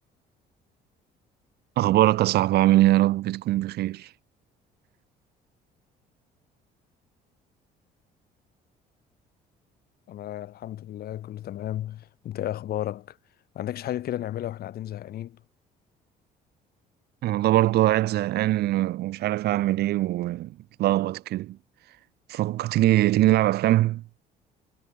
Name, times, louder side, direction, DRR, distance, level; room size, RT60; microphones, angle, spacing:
voice 1, 1.8-4.1 17.2-21.6 22.3-24.0, right 15 dB, 75° right, 1.8 m, -22 dB
voice 2, 10.1-13.2 13.5-15.4, left 12 dB, 65° left, 4.3 m, -33 dB
cardioid pair, 110°, 17 cm